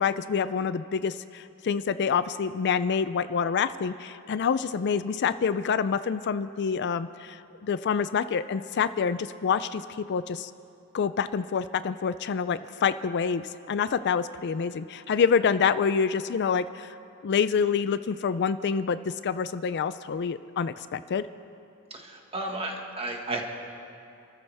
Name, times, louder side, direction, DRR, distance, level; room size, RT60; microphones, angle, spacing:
voice 1, 0.0-9.8 10.1-10.5 10.9-17.0 17.2-21.3, left 6 dB, 55° left, 14 dB, 0.4 m, -27 dB
voice 2, 21.9-23.4, right 2 dB, 25° right, 1 dB, 1.8 m, -33 dB
29.0 x 14.0 x 3.5 m, 2.6 s
head